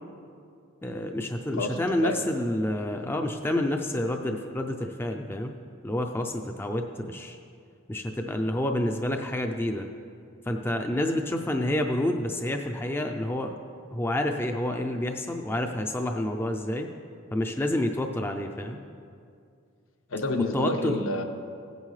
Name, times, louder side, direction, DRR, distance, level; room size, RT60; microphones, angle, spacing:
voice 1, 0.8-5.5 5.8-7.4 7.9-9.9 10.5-13.5 13.9-16.9 17.3-18.8 20.5-21.0, left 1 dB, 10° left, 4 dB, 0.4 m, -28 dB
voice 2, 1.6-2.2 20.1-21.2, left 2 dB, 75° left, 5 dB, 0.9 m, -29 dB
16.0 x 9.2 x 3.2 m, 2.4 s
head